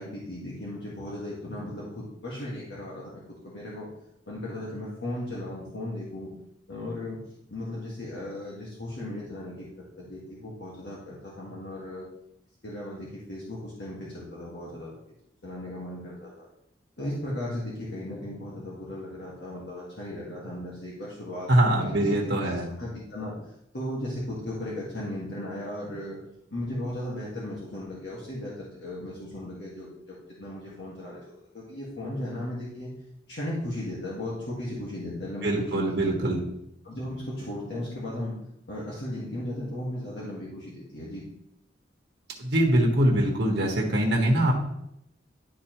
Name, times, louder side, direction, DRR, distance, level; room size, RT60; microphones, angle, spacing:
voice 1, 0.0-3.9 4.3-6.3 6.7-7.2 7.5-9.6 10.0-12.1 12.6-15.0 15.4-16.5 17.0-26.2 26.5-31.2 31.5-32.9 33.3-36.3 36.8-38.3 38.7-41.2, left 1 dB, 70° left, -6 dB, 1.7 m, -36 dB
voice 2, 21.5-22.7 35.4-36.4 42.4-44.5, right 1 dB, 65° right, -1 dB, 1.4 m, -23 dB
11.5 x 4.6 x 3.1 m, 0.79 s
head